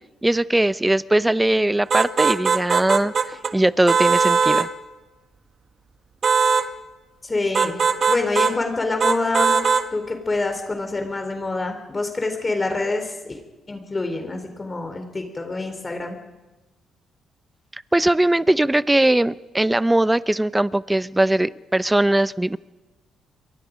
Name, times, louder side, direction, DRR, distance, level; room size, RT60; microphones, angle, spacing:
voice 1, 0.2-4.7 17.9-22.6, right 1 dB, 10° right, 16 dB, 0.7 m, -20 dB
sound 1, 1.9-3.5 3.9-4.7 6.2-6.7 7.5-8.6 9.0-9.9, right 5 dB, 50° right, 1.4 m, -20 dB
voice 2, 7.2-7.8 8.1-9.5 9.9-13.4 13.7-16.2, left 3 dB, 25° left, 5 dB, 3.7 m, -26 dB
28.5 x 23.5 x 5.2 m, 1.1 s
cardioid pair, 90°, 0 cm